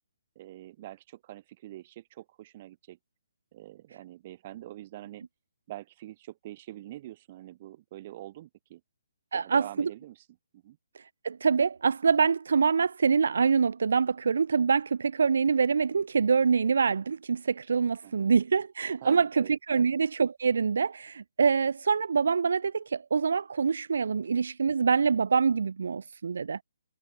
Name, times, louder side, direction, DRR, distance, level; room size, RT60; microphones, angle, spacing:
voice 1, 0.4-3.0 3.5-5.2 5.7-8.8 9.3-10.3 10.5-10.8 18.0-18.3 19.0-19.6 19.8-19.9, right 14 dB, 25° right, 3.9 m, -45 dB
voice 2, 9.3-9.9 10.9-26.6, right 5 dB, 65° right, 1.2 m, -25 dB
hypercardioid pair, 175°, 0 cm